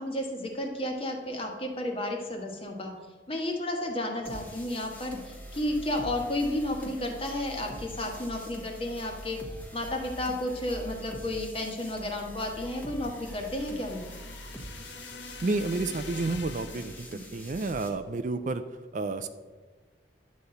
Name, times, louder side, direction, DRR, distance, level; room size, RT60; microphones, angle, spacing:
voice 1, 0.0-2.9 3.3-9.4 9.7-14.0, left 1 dB, 30° left, 2 dB, 1.4 m, -32 dB
sound 1, 4.2-17.9, equal, 10° left, 1.1 m, -44 dB
sound 2, 12.4-17.2, left 5 dB, 70° left, 0.8 m, -46 dB
voice 2, 15.4-17.1 17.3-18.6 18.9-19.3, right 3 dB, 40° right, 10 dB, 0.4 m, -30 dB
11.5 x 4.2 x 7.8 m, 1.4 s
head